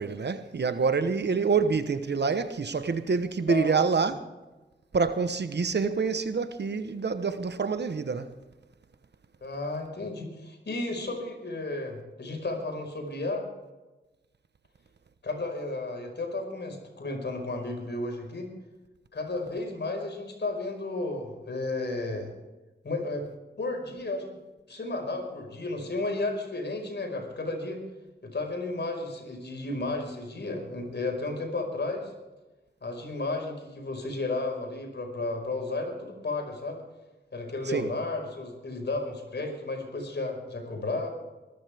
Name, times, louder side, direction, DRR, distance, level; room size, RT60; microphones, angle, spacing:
voice 1, 0.0-4.1 4.9-8.3 37.7-37.9, right 5 dB, 60° right, 1.1 m, -27 dB
voice 2, 3.5-4.1 9.4-13.5 15.2-18.5 19.1-22.3 22.8-23.3 23.6-24.4 24.7-27.8 28.2-32.1 32.8-36.8 37.3-41.1, left 2 dB, 65° left, 5.1 m, -33 dB
23.5 x 13.5 x 3.6 m
cardioid pair, 50°, 19 cm